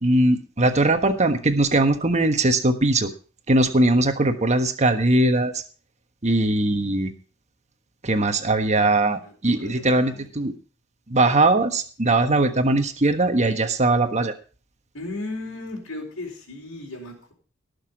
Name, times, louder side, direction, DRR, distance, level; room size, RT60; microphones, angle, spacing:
voice 1, 0.0-3.1 3.5-5.6 6.2-7.1 8.0-10.5 11.1-14.3, right 2 dB, 35° right, 7 dB, 1.4 m, -20 dB
voice 2, 9.1-10.5 14.9-17.3, left 2 dB, 75° left, -1 dB, 4.2 m, -36 dB
18.5 x 6.7 x 5.1 m, 0.37 s
head